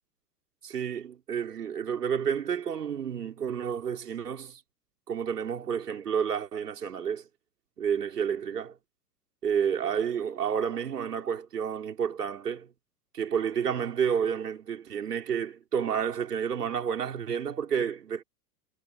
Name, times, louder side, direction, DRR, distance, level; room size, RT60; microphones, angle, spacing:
voice 1, 0.6-4.6 5.1-7.2 7.8-8.8 9.4-12.7 13.1-18.2, right 7 dB, 85° right, 4.6 m, -30 dB
hypercardioid pair, 95°, 46 cm